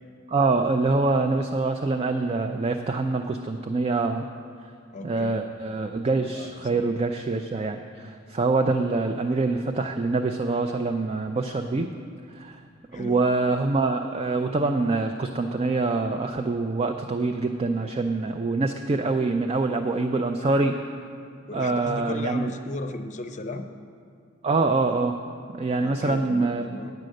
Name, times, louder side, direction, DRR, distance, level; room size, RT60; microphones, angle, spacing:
voice 1, 0.3-4.3 5.0-11.9 12.3-12.6 12.9-20.7 21.5-22.4 24.4-25.2 25.5-26.8, right 3 dB, 30° right, 5 dB, 0.4 m, -25 dB
voice 2, 4.9-5.4 6.2-6.8 12.9-13.2 21.5-23.6 25.8-26.9, left 2 dB, 35° left, 7 dB, 0.6 m, -36 dB
9.3 x 7.7 x 6.4 m, 2.3 s
head